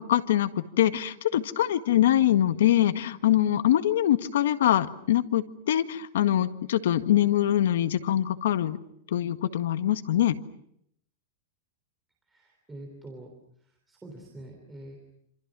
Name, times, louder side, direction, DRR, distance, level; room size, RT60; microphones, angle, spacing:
voice 1, 0.0-8.8 9.1-10.4, left 12 dB, 70° left, 9 dB, 1.7 m, -24 dB
voice 2, 12.3-13.3 13.9-15.0, right 1 dB, 5° right, 1 dB, 3.4 m, -45 dB
27.5 x 27.0 x 6.2 m, 0.72 s
supercardioid pair, 180°, 0 cm